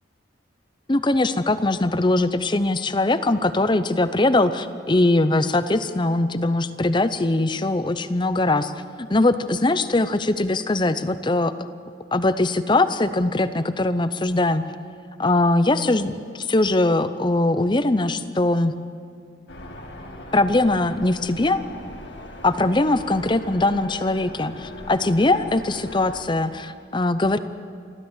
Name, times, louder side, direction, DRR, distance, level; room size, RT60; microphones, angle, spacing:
voice 1, 0.9-8.7 9.0-11.5 12.1-14.6 15.2-18.7 20.3-21.6 22.4-27.4, left 2 dB, 25° left, 12 dB, 0.7 m, -21 dB
sound 1, 19.5-26.2, left 1 dB, 60° left, 2.2 m, -39 dB
27.0 x 13.5 x 8.2 m, 2.2 s
head